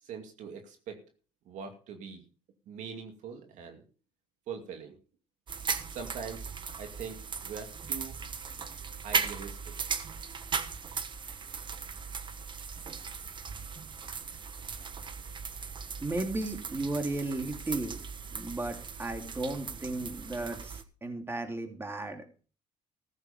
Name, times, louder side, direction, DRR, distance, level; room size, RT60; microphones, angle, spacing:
voice 1, 0.0-1.0 1.4-2.3 2.7-3.8 4.5-5.0 5.9-6.5 6.8-8.2 9.0-9.9, right 6 dB, 75° right, 5 dB, 2.4 m, -42 dB
sound 1, 5.5-20.8, right 5 dB, 40° right, 1.3 m, -38 dB
voice 2, 16.0-18.0 18.3-22.2, right 2 dB, 20° right, 4 dB, 3.2 m, -35 dB
15.0 x 8.1 x 5.2 m, 0.37 s
cardioid pair, 90°, 13 cm